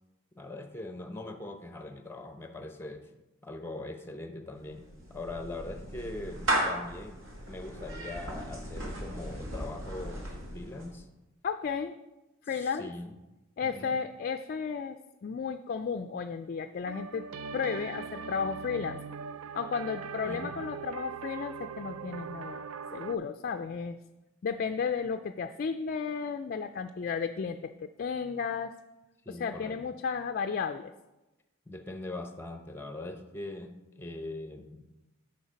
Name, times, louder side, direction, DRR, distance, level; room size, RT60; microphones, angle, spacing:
voice 1, 0.4-3.1 3.4-4.8 5.1-7.2 7.5-11.1 12.5-13.1 13.6-14.0 20.2-20.5 29.3-29.8 31.7-34.9, left 2 dB, 10° left, 6 dB, 0.6 m, -41 dB
Clapping / Meow, 4.6-11.0, right 1 dB, 65° right, 1.6 m, -36 dB
voice 2, 11.4-11.9 12.4-12.9 13.6-17.3 17.5-19.0 19.5-22.7 22.9-24.0 24.4-28.8 29.3-30.9, left 6 dB, 45° left, 8 dB, 0.3 m, -33 dB
sound 1, 16.9-23.2, right 6 dB, 80° right, 0.4 m, -41 dB
7.9 x 5.6 x 5.2 m, 1.0 s
head